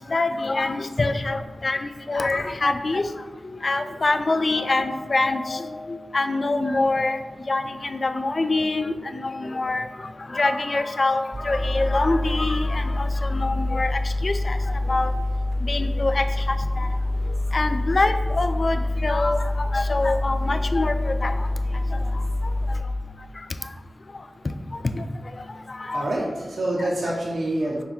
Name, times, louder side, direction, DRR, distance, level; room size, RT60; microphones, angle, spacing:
voice 1, 0.0-1.8 2.1-3.0 3.6-7.2 7.5-9.9 10.3-14.6 14.9-15.1 15.6-16.9 17.5-21.3 21.9-22.0 24.9-25.0 25.7-26.1 26.8-26.9, left 2 dB, 55° left, 7 dB, 0.4 m, -25 dB
sound 1, 11.3-22.8, left 2 dB, 5° right, 0.6 m, -26 dB
voice 2, 25.9-27.8, right 1 dB, 80° right, -3 dB, 0.7 m, -26 dB
5.4 x 2.3 x 4.3 m, 1.3 s
cardioid pair, 40°, 0 cm